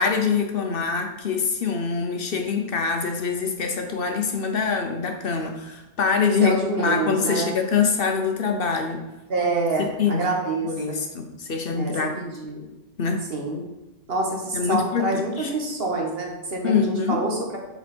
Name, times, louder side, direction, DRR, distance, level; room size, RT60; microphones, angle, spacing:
voice 1, 0.0-9.0 9.8-10.4 10.6-12.2 13.0-13.2 14.5-15.5 16.6-17.2, left 5 dB, 60° left, 4 dB, 0.9 m, -24 dB
voice 2, 6.4-7.5 9.3-11.0 11.7-12.7 13.3-13.6 14.1-17.4, right 2 dB, 60° right, 0 dB, 1.5 m, -27 dB
6.8 x 4.5 x 4.3 m, 1.0 s
omnidirectional pair, 1.1 m